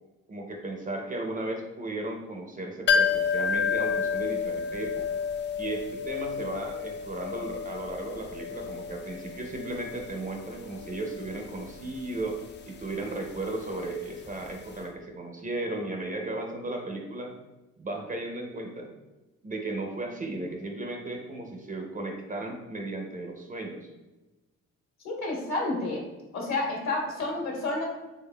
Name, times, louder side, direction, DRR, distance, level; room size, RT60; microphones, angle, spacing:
voice 1, 0.3-5.2 5.6-17.3 17.8-18.9 19.4-23.9, right 2 dB, 25° right, 2 dB, 0.5 m, -35 dB
sound 1, 2.9-14.5 14.7-14.8, left 6 dB, 35° left, 0.4 m, -31 dB
voice 2, 25.0-26.0 26.3-27.9, left 2 dB, 65° left, -2 dB, 1.4 m, -30 dB
3.6 x 3.3 x 2.2 m, 1.1 s
cardioid pair, 90°, 30 cm